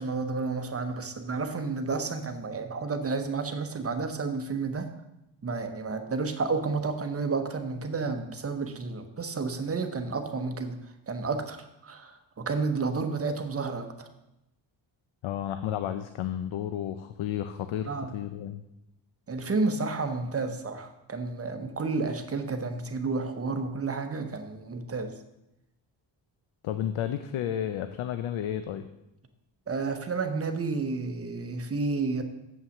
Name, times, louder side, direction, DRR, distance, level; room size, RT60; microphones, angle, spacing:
voice 1, 0.0-4.9 5.4-10.8 11.1-14.1 17.9-18.1 19.3-25.1 29.7-32.2, right 4 dB, 30° right, 7 dB, 0.9 m, -31 dB
voice 2, 15.2-18.6 26.6-28.9, left 10 dB, 90° left, 10 dB, 0.6 m, -32 dB
7.6 x 5.6 x 7.1 m, 0.90 s
cardioid pair, 115°, 46 cm